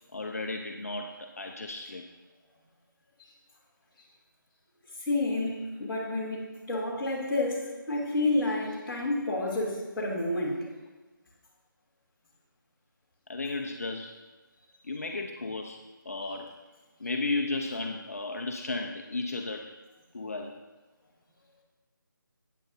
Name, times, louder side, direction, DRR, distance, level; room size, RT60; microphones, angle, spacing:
voice 1, 0.1-2.0 13.3-14.1 14.8-15.8 16.1-16.5 17.0-19.7 20.1-20.6, left 3 dB, 45° left, 3 dB, 0.6 m, -34 dB
voice 2, 5.0-10.7, left 2 dB, 5° left, -13 dB, 1.4 m, -30 dB
13.5 x 9.1 x 2.7 m, 1.2 s
figure-of-eight pair, 180°, 11 cm